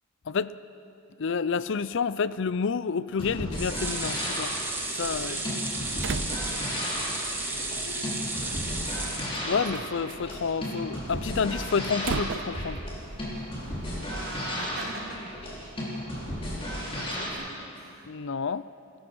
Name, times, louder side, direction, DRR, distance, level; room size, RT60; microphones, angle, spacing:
voice 1, 1.2-4.5 4.9-5.4 9.4-12.8 18.1-18.7, left 5 dB, 60° left, 16 dB, 0.5 m, -29 dB
sound 1, 3.1-17.3, equal, 25° left, 5.7 m, -34 dB
sound 2, 3.6-9.9 10.3-10.4 10.7-10.8, right 2 dB, 10° right, 2.4 m, -33 dB
Slam, 5.0-14.4, right 5 dB, 60° right, 0.5 m, -41 dB
voice 2, 5.2-6.8 7.5-9.0 11.3-11.5 14.1-15.3 16.2-18.1, right 2 dB, 80° right, -1 dB, 3.6 m, -44 dB
29.5 x 15.0 x 6.3 m, 2.7 s
head